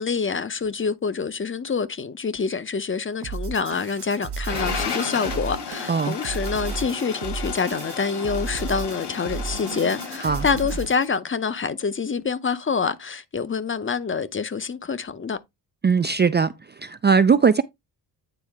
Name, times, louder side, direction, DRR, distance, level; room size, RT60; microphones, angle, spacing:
voice 1, 0.0-15.4, left 5 dB, 30° left, 0.7 m, -26 dB
sound 1, 3.2-11.1, right 4 dB, 70° right, 0.9 m, -34 dB
sound 2, 4.5-10.9, left 5 dB, 75° left, 2.9 m, -33 dB
voice 2, 15.8-16.5 16.8-17.6, right 5 dB, 25° right, 0.4 m, -19 dB
9.1 x 4.2 x 3.5 m
cardioid pair, 110°, 41 cm